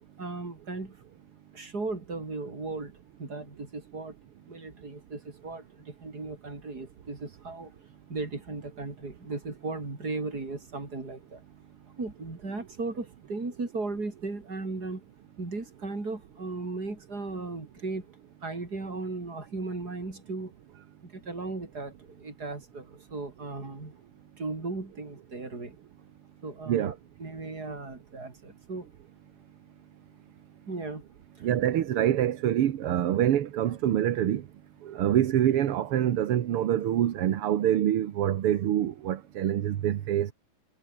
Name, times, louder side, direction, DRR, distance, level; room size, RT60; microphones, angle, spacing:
voice 1, 0.2-1.0 1.5-2.9 3.2-4.1 4.5-7.7 8.1-11.4 11.9-15.0 15.4-18.1 18.4-20.5 21.1-23.9 24.4-25.8 26.4-26.9 27.2-28.9 30.7-31.0 31.4-31.5, right 3 dB, 25° right, 5.0 m, -36 dB
voice 2, 31.4-34.4 34.8-40.3, right 11 dB, 60° right, 1.5 m, -25 dB
omnidirectional pair, 3.8 m